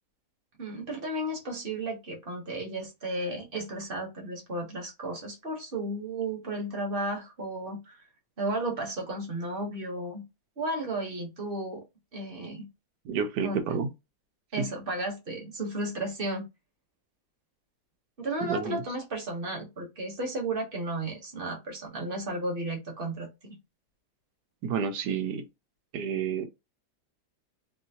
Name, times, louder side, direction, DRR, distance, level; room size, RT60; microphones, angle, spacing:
voice 1, 0.6-8.0 8.4-10.2 10.6-11.8 12.1-12.7 13.4-13.8 14.5-16.4 18.2-23.3, right 1 dB, 40° right, 1.1 m, -33 dB
voice 2, 13.0-13.9 14.6-14.7 18.4-18.8 24.6-25.5 25.9-26.5, right 6 dB, 75° right, 1.3 m, -30 dB
3.3 x 2.7 x 2.8 m
omnidirectional pair, 1.8 m